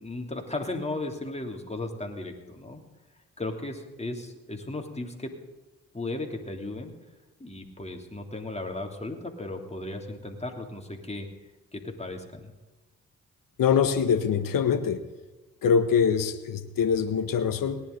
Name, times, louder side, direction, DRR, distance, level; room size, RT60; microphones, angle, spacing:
voice 1, 0.0-2.8 3.4-5.3 5.9-6.9 7.4-11.3 11.7-12.5, left 2 dB, 20° left, 3 dB, 3.1 m, -35 dB
voice 2, 13.6-15.0 15.6-17.8, left 7 dB, 65° left, 10 dB, 1.4 m, -24 dB
18.5 x 11.0 x 4.0 m, 1.2 s
hypercardioid pair, 45°, 36 cm